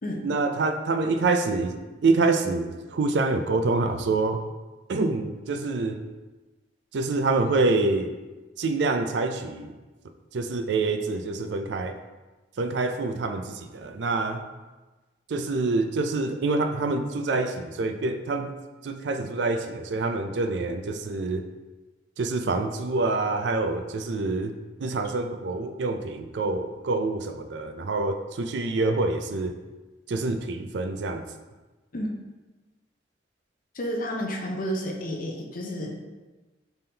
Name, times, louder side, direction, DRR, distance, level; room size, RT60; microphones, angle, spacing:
voice 1, 0.2-4.4 4.9-6.0 6.9-8.1 8.6-9.7 10.3-12.0 12.6-14.4 15.3-18.5 18.8-21.4 22.2-24.5 24.8-29.5 30.1-31.2, right 3 dB, 75° right, 7 dB, 0.4 m, -26 dB
voice 2, 33.7-36.0, equal, 50° left, 1 dB, 0.6 m, -31 dB
5.5 x 3.5 x 2.8 m, 1.2 s
head